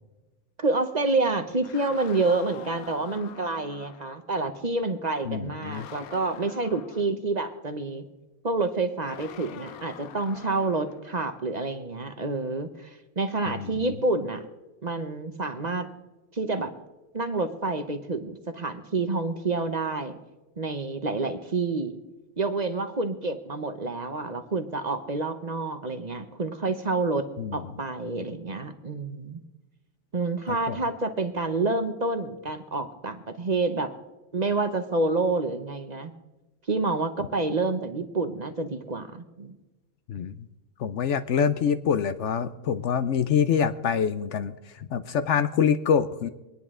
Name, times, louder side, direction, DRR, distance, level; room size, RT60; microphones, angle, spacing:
voice 1, 0.6-8.0 8.4-14.4 14.8-15.8 16.3-16.7 17.1-20.2 20.6-22.0 22.4-29.4 30.1-33.9 34.3-36.1 36.7-39.6, right 3 dB, 35° right, 8 dB, 0.9 m, -28 dB
sound 1, 1.5-4.2 5.6-7.1 9.1-11.0, left 9 dB, 80° left, 1.2 m, -45 dB
voice 2, 5.3-5.9 13.5-13.9 27.4-27.6 30.5-30.8 40.1-40.4 40.8-46.3, left 7 dB, 65° left, 12 dB, 0.8 m, -26 dB
24.5 x 10.0 x 3.7 m, 1.1 s
omnidirectional pair, 1.5 m